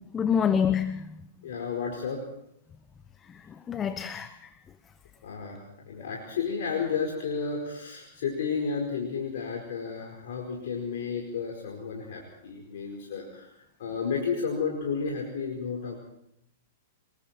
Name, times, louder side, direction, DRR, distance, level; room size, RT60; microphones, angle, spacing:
voice 1, 0.1-1.2 3.3-4.5, left 7 dB, 20° left, 11 dB, 1.1 m, -27 dB
voice 2, 1.4-2.2 5.2-5.6 5.9-13.5 13.8-16.0, left 5 dB, 60° left, 0 dB, 4.9 m, -32 dB
27.5 x 21.0 x 4.5 m, 0.76 s
figure-of-eight pair, 105°, 0 cm